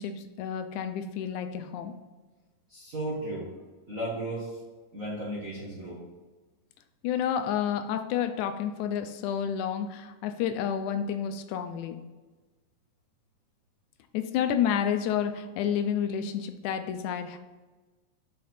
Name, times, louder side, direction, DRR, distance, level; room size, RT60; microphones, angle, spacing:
voice 1, 0.0-1.9 7.0-12.0 14.1-17.4, left 8 dB, 80° left, 8 dB, 1.9 m, -30 dB
voice 2, 2.7-3.5 3.9-4.5 4.9-6.0, right 1 dB, 45° right, -7 dB, 1.1 m, -34 dB
5.7 x 5.0 x 4.2 m, 1.3 s
omnidirectional pair, 3.5 m